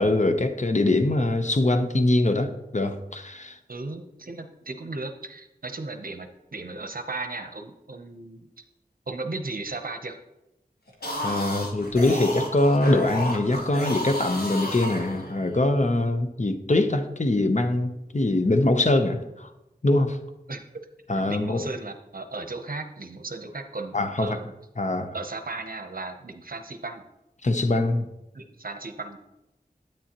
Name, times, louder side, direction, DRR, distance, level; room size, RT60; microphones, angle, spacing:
voice 1, 0.0-3.6 11.2-19.5 19.8-20.2 21.1-21.6 23.9-24.4 24.8-25.1 27.4-28.1, left 2 dB, 50° left, 7 dB, 0.8 m, -23 dB
voice 2, 3.7-8.6 9.1-10.2 20.5-20.8 21.3-24.5 25.1-27.1 28.3-29.2, right 3 dB, 65° right, 6 dB, 0.8 m, -36 dB
sound 1, 10.9-15.6, equal, 80° left, 1.5 m, -32 dB
10.0 x 9.0 x 3.0 m, 0.94 s
wide cardioid pair, 45°, 16 cm